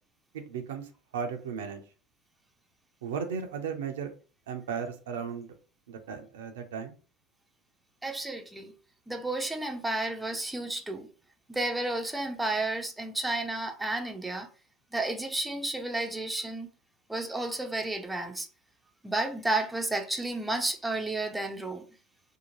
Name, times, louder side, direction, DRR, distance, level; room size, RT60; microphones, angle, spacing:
voice 1, 0.3-0.9 1.1-1.8 3.0-4.1 4.5-5.5 5.9-6.9, right 6 dB, 70° right, 0.5 m, -35 dB
voice 2, 8.0-8.7 9.1-11.1 11.5-14.5 14.9-16.7 17.1-18.5 19.0-21.9, right 2 dB, 5° right, 0.5 m, -32 dB
2.7 x 2.1 x 3.0 m
figure-of-eight pair, 75°, 0 cm